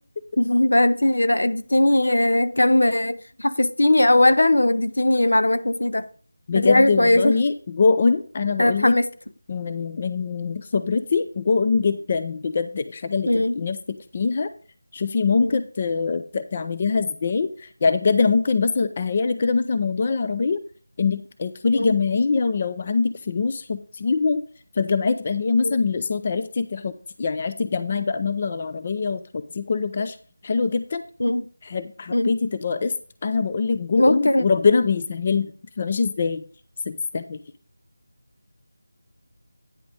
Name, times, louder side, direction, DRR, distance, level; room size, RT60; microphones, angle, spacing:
voice 1, 0.4-6.1 6.5-7.4 8.6-9.1 13.3-13.5 15.4-15.6 21.7-22.0 25.6-25.8 31.2-31.4 32.1-32.3 34.0-34.4, left 1 dB, 85° left, 0.8 m, -19 dB
voice 2, 6.5-9.0 9.5-13.3 13.6-14.5 14.9-20.6 21.0-24.4 24.8-30.2 30.4-31.0 31.6-32.9 33.2-35.5 35.8-36.4 36.9-37.4, left 4 dB, 30° left, 0.4 m, -23 dB
9.5 x 5.1 x 5.2 m
figure-of-eight pair, 170°, 0 cm